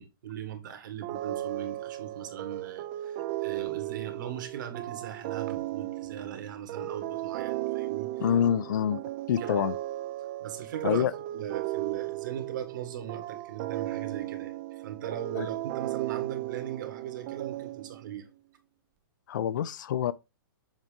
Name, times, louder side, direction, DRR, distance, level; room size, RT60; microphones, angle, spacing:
voice 1, 0.0-8.2 9.4-9.7 10.4-18.3, right 9 dB, 60° right, 1.7 m, -39 dB
sound 1, 1.0-18.2, right 16 dB, 30° right, 0.4 m, -36 dB
voice 2, 8.2-9.0 9.3-9.7 10.8-11.1 15.4-15.5 19.3-20.1, left 9 dB, 60° left, 0.5 m, -26 dB
7.3 x 2.6 x 5.0 m
hypercardioid pair, 155°, 12 cm